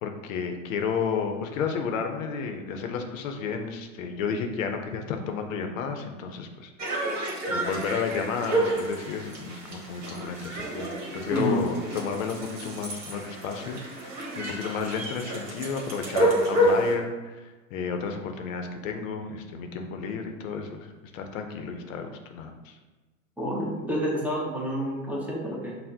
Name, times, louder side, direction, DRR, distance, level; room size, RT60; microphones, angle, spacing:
voice 1, 0.0-7.1 7.5-22.8, left 6 dB, 65° left, 5 dB, 0.6 m, -32 dB
sound 1, 6.8-16.9, right 1 dB, 40° right, 1.2 m, -29 dB
voice 2, 11.3-11.6 23.4-25.8, equal, 5° right, -5 dB, 0.7 m, -29 dB
5.5 x 2.1 x 2.7 m, 1.2 s
hypercardioid pair, 100°, 42 cm